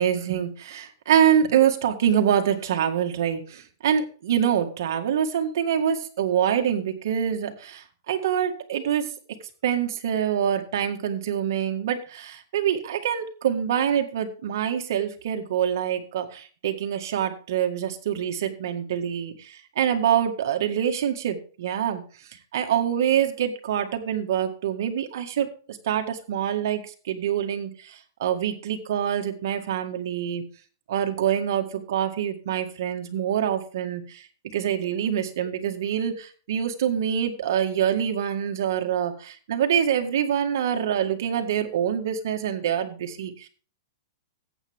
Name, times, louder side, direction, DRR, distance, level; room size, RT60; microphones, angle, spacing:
voice 1, 0.0-9.1 9.6-22.0 22.5-30.4 30.9-34.2 34.5-43.5, right 9 dB, 60° right, 5 dB, 1.9 m, -25 dB
14.5 x 8.4 x 3.6 m, 0.40 s
hypercardioid pair, 160°, 2 cm